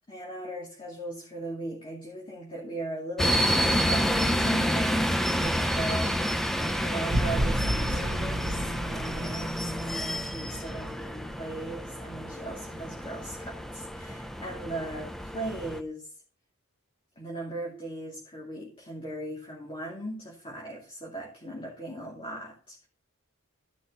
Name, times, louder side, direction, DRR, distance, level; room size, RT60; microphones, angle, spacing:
voice 1, 0.1-6.2 6.8-16.1 17.2-22.9, right 1 dB, 25° left, -3 dB, 2.5 m, -38 dB
sound 1, 3.2-15.8, equal, ahead, 0.6 m, -29 dB
sound 2, 5.4-12.2, right 1 dB, 75° right, 1.3 m, -34 dB
14.5 x 6.1 x 4.1 m, 0.39 s
head